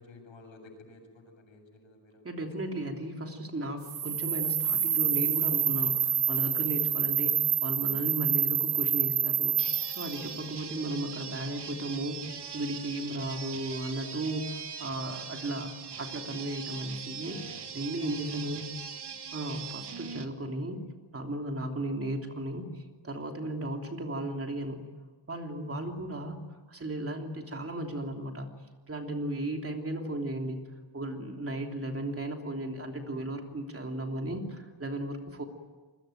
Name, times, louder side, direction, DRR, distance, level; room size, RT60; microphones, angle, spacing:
voice 1, 0.0-2.2 2.7-2.9 17.3-17.7 18.0-18.9, left 3 dB, 85° left, 4 dB, 7.8 m, -54 dB
voice 2, 2.2-9.5 9.9-15.7 16.0-18.7 19.3-20.8 21.1-24.8 25.3-26.4 26.7-28.5 28.9-30.6 30.9-35.4, right 1 dB, 30° right, 3 dB, 3.2 m, -35 dB
sound 1, 3.8-10.1, right 9 dB, 85° right, 1.7 m, -27 dB
sound 2, 9.6-20.3, right 6 dB, 60° right, 2.0 m, -41 dB
26.5 x 22.5 x 9.3 m, 1.3 s
wide cardioid pair, 140°, 45 cm